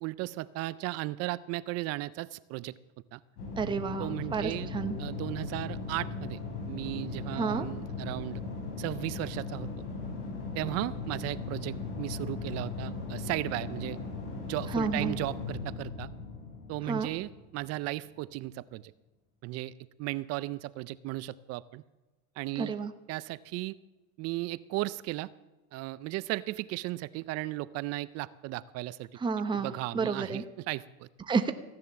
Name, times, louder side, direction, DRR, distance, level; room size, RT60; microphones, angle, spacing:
voice 1, 0.0-2.7 3.1-3.2 4.0-4.7 5.0-6.4 6.7-8.4 8.8-9.7 10.5-14.0 14.5-16.1 16.7-18.9 19.4-19.7 20.0-21.8 22.4-22.7 23.1-23.7 24.2-25.3 25.7-29.1 29.5-31.1, right 18 dB, 35° right, 18 dB, 0.4 m, -35 dB
sound 1, 3.4-17.8, left 4 dB, 80° left, 6.3 m, -38 dB
voice 2, 3.6-4.9 7.3-7.7 14.7-15.2 16.9-17.1 22.6-22.9 29.2-30.4 31.3-31.5, right 5 dB, 10° right, 8 dB, 0.8 m, -30 dB
15.5 x 10.5 x 6.9 m, 1.1 s
supercardioid pair, 130°, 44 cm